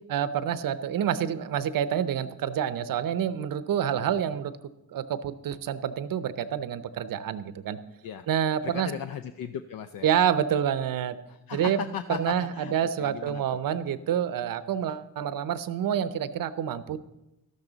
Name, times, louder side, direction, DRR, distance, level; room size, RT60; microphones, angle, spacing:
voice 1, 0.1-4.5 4.9-7.8 8.3-8.9 10.0-11.2 11.5-11.8 12.1-17.0, right 9 dB, 65° right, 14 dB, 0.7 m, -28 dB
voice 2, 8.6-10.1 11.3-13.6, left 8 dB, 65° left, 10 dB, 0.6 m, -37 dB
13.0 x 12.0 x 4.0 m, 0.93 s
cardioid pair, 110°, 36 cm